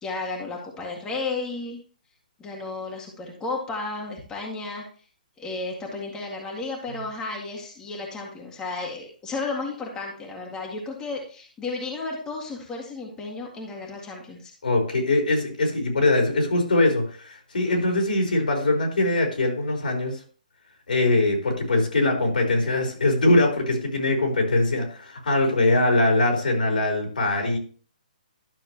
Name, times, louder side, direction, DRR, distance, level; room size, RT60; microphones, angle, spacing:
voice 1, 0.0-1.8 2.4-4.8 5.4-14.5, left 3 dB, 15° left, -1 dB, 1.9 m, -33 dB
voice 2, 14.6-20.2 20.9-27.6, left 2 dB, 80° left, 1 dB, 4.1 m, -22 dB
12.0 x 6.4 x 3.1 m, 0.42 s
hypercardioid pair, 140°, 5 cm